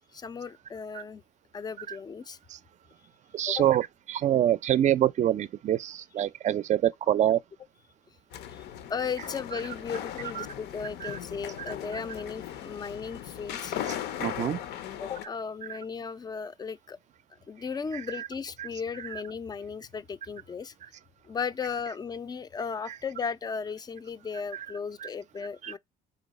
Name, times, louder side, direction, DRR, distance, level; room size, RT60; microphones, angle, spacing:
voice 1, 0.1-1.2 1.5-2.4 3.5-3.7 8.5-8.6 8.9-13.8 15.0-17.0 17.5-20.7 21.3-25.8, left 6 dB, 25° left, 0.4 m, -36 dB
voice 2, 3.3-7.4 10.4-10.5 11.0-11.2 11.9-12.0 14.2-14.6 15.7-15.8 17.9-18.3 18.6-18.7 18.9-19.2 22.9-23.0 24.5-24.7 25.0-25.1 25.6-25.7, right 11 dB, 45° right, 0.4 m, -26 dB
sound 1, 8.3-15.3, left 10 dB, 75° left, 0.6 m, -38 dB
4.0 x 3.1 x 4.0 m
cardioid pair, 110°, 17 cm